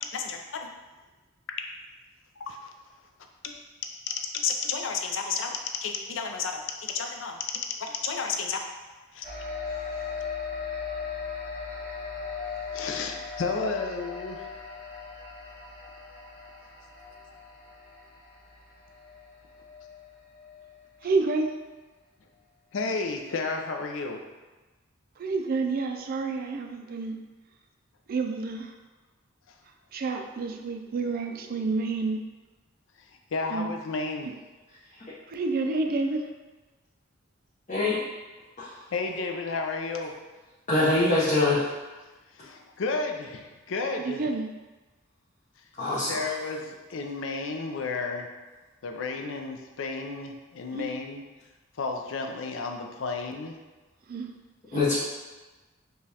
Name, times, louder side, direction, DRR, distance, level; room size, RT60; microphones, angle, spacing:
voice 1, 0.0-0.7 2.4-2.7 3.4-3.5 4.1-5.5 5.8-7.4 7.8-8.6 9.1-9.3 12.7-14.5 22.7-24.2 29.5-29.6 33.0-34.3 38.9-40.1 42.3-44.2 46.1-48.3 48.8-51.2 51.8-53.6, left 4 dB, 70° left, 4 dB, 0.4 m, -32 dB
sound 1, 9.2-21.0, left 5 dB, 15° right, 0.8 m, -38 dB
voice 2, 21.0-21.5 25.2-27.2 28.1-28.7 29.9-32.2 33.5-33.7 35.3-36.3 44.0-44.5 50.7-50.9 54.1-54.3 54.7-54.8, right 3 dB, 50° right, 4 dB, 0.4 m, -29 dB
voice 3, 37.7-38.0 38.6-38.8 40.7-41.7 45.8-46.2 54.7-54.9, left 2 dB, 35° left, -9 dB, 0.7 m, -24 dB
4.9 x 2.3 x 2.8 m, 1.2 s
head